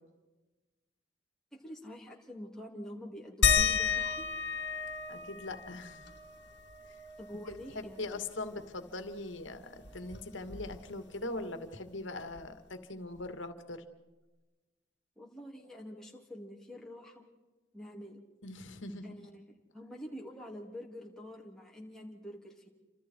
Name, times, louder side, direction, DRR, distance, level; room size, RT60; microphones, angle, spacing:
voice 1, 1.5-4.3 7.2-8.2 15.2-17.3 17.7-18.2 19.0-22.7, equal, 5° left, -2 dB, 3.2 m, -46 dB
sound 1, 3.4-8.6 8.9-9.0 9.3-11.1 12.4-12.5 13.2-13.3, left 6 dB, 60° left, 2.3 m, -33 dB
voice 2, 5.1-6.0 7.7-13.8 18.4-19.2, left 2 dB, 75° left, 8 dB, 2.2 m, -41 dB
29.5 x 26.0 x 4.7 m, 1.2 s
head